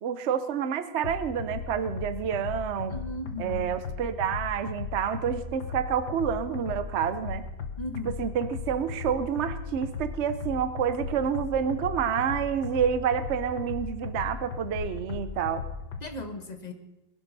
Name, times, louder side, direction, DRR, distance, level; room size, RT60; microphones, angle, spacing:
voice 1, 0.0-3.0 3.4-7.5 8.0-15.6, right 8 dB, 60° right, 11 dB, 0.7 m, -28 dB
sound 1, 1.0-16.0, left 5 dB, 60° left, 1.7 m, -36 dB
voice 2, 2.9-3.7 7.8-8.1 16.0-16.7, left 2 dB, 25° left, 6 dB, 1.1 m, -37 dB
22.0 x 11.0 x 4.1 m, 0.99 s
omnidirectional pair, 2.1 m